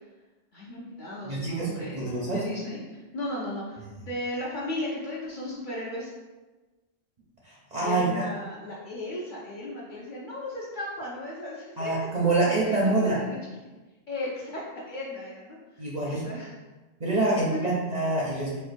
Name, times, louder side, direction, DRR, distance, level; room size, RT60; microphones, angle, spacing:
voice 1, 0.5-6.1 7.8-11.9 12.3-13.4 14.1-16.6 17.5-17.7, left 1 dB, 55° left, -5 dB, 0.6 m, -36 dB
voice 2, 1.2-2.4 7.4-8.2 11.8-13.2 15.8-16.2 17.0-18.6, right 2 dB, 50° right, -5 dB, 0.5 m, -26 dB
4.4 x 2.2 x 2.5 m, 1.2 s
omnidirectional pair, 1.2 m